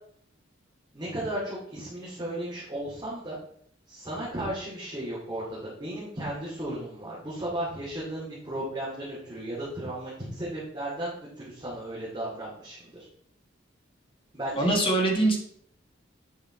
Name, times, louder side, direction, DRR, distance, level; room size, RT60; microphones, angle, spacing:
voice 1, 0.9-3.4 3.9-13.0 14.3-14.7, right 1 dB, 20° right, -8 dB, 2.6 m, -35 dB
voice 2, 14.6-15.4, right 2 dB, 30° left, 0 dB, 1.9 m, -23 dB
8.8 x 5.4 x 4.5 m, 0.66 s
head